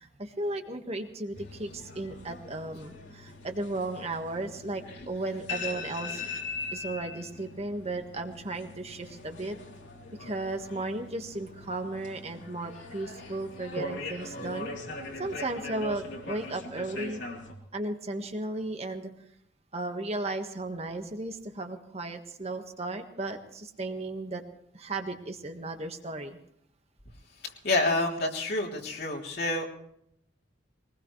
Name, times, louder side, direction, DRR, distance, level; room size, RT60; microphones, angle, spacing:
voice 1, 0.0-6.2 6.7-9.6 10.2-14.7 15.2-17.2 17.7-19.1 19.7-24.4 24.7-26.4, right 2 dB, 35° right, 5 dB, 1.5 m, -35 dB
sound 1, 1.3-17.5, left 3 dB, 85° left, 3.4 m, -41 dB
voice 2, 27.4-29.6, left 2 dB, 60° left, 0 dB, 3.2 m, -28 dB
22.5 x 20.0 x 3.2 m, 0.72 s
head